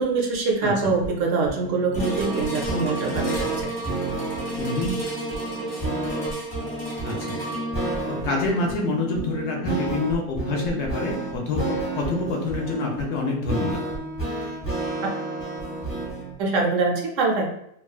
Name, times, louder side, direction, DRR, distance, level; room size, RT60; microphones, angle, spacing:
voice 1, 0.0-3.7 16.4-17.5, right 4 dB, 75° right, 1 dB, 0.9 m, -24 dB
sound 1, 1.0-16.3, right 3 dB, 15° left, 0.9 m, -31 dB
sound 2, 1.9-12.3 12.9-13.0, right 1 dB, 20° right, 0.8 m, -34 dB
voice 2, 4.6-4.9 7.0-7.4 8.1-13.8, left 3 dB, 65° left, 0 dB, 0.8 m, -27 dB
2.9 x 2.3 x 2.3 m, 0.74 s
omnidirectional pair, 1.4 m